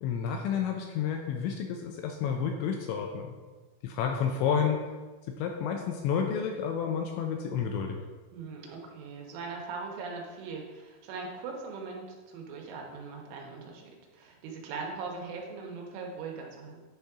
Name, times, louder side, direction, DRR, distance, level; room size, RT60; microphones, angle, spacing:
voice 1, 0.0-3.3 3.8-4.8 5.3-8.0, left 7 dB, 80° left, 3 dB, 2.7 m, -30 dB
voice 2, 8.3-16.8, right 4 dB, 75° right, 0 dB, 3.6 m, -40 dB
10.5 x 4.2 x 4.8 m, 1.3 s
omnidirectional pair, 5.8 m